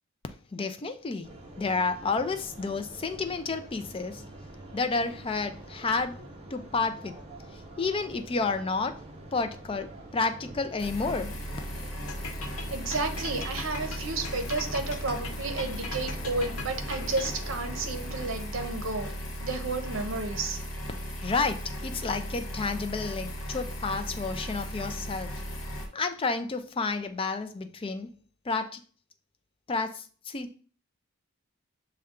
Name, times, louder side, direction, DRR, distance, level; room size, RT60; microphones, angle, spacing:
voice 1, 0.5-4.2 4.7-6.2 6.5-7.2 7.8-9.0 9.3-11.3 21.2-25.3 25.9-28.1 28.5-28.8 29.7-30.5, left 4 dB, 25° left, 0.3 m, -30 dB
sound 1, 1.2-18.3, right 1 dB, 30° right, 0.6 m, -46 dB
sound 2, 10.8-25.9, equal, 65° left, 1.1 m, -37 dB
sound 3, 12.1-17.6, left 4 dB, 85° left, 0.7 m, -40 dB
voice 2, 12.7-19.1 19.4-20.6, right 3 dB, 65° right, 0.7 m, -32 dB
6.4 x 2.3 x 3.6 m
head